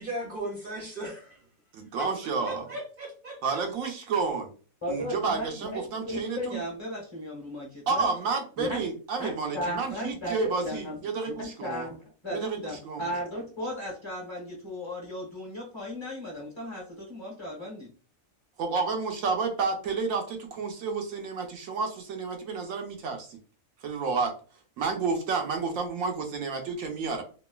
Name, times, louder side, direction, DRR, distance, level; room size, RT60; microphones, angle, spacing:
voice 1, 0.0-1.4 2.0-2.1 2.4-3.6, right 1 dB, 50° right, 0.7 m, -37 dB
voice 2, 1.7-2.7 3.4-4.5 4.9-6.6 7.9-11.9 12.3-13.1 18.6-23.4 23.8-24.3 24.8-27.2, right 4 dB, 75° right, 1.0 m, -30 dB
voice 3, 4.8-8.1 8.6-8.8 9.2-11.0 11.3-17.9, left 1 dB, 25° left, 0.8 m, -36 dB
3.0 x 2.2 x 2.3 m
omnidirectional pair, 1.4 m